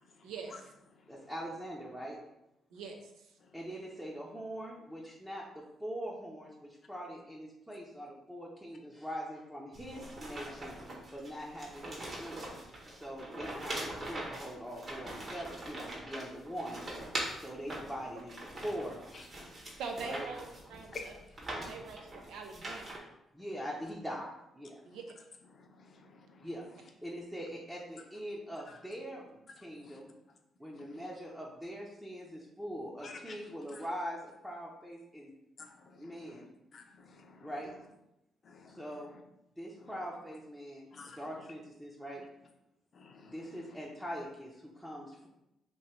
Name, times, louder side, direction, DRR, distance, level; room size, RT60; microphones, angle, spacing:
voice 1, 0.2-0.5 2.7-3.0 19.8-20.4 20.7-21.1 21.7-23.0 24.9-25.0, right 5 dB, 85° right, 3 dB, 0.6 m, -43 dB
voice 2, 1.1-2.2 3.5-10.8 11.1-12.4 12.9-16.8 17.3-19.0 20.0-20.3 23.3-24.8 26.4-30.1 30.6-35.3 36.0-36.5 37.4-37.7 38.8-39.1 39.6-42.2 43.3-45.3, equal, 5° right, -5 dB, 0.7 m, -42 dB
sound 1, 9.7-23.0, right 1 dB, 40° right, 1.2 m, -43 dB
voice 3, 25.5-26.5 28.7-28.8 29.7-30.0 30.7-31.0 33.0-33.4 33.7-33.8 35.6-36.4 36.7-37.5 38.4-38.8 40.9-41.5 42.9-43.8, left 4 dB, 50° left, 3 dB, 0.6 m, -51 dB
3.0 x 2.9 x 4.4 m, 0.87 s
cardioid pair, 90°, 0 cm